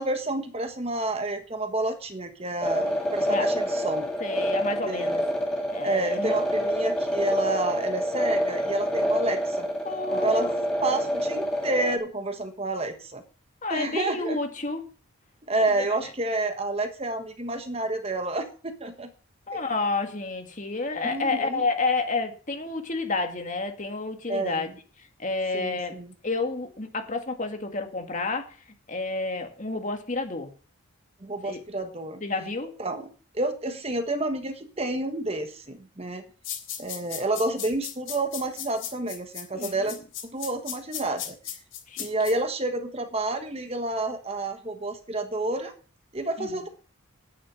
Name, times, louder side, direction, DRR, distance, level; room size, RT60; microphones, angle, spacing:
voice 1, 0.0-4.1 4.9-5.2 5.8-9.7 10.1-10.5 10.8-13.2 13.7-14.4 15.5-19.1 19.5-19.6 21.0-21.6 24.3-24.6 25.5-26.1 31.2-32.2 32.8-36.2 36.8-40.0 40.3-41.3 42.0-45.7 46.1-46.7, right 2 dB, 25° right, 7 dB, 1.3 m, -29 dB
sound 1, 2.6-12.0, equal, 5° left, 2.7 m, -27 dB
voice 2, 4.2-5.2 5.7-6.3 9.8-10.7 13.6-14.9 19.5-24.7 25.2-28.6 28.9-30.5 31.4-31.6 32.2-32.8 39.5-39.9 41.9-42.1 46.4-46.6, left 3 dB, 35° left, 5 dB, 2.0 m, -30 dB
sound 2, 36.4-42.3, left 10 dB, 60° left, 3.4 m, -36 dB
10.0 x 10.0 x 6.1 m, 0.38 s
head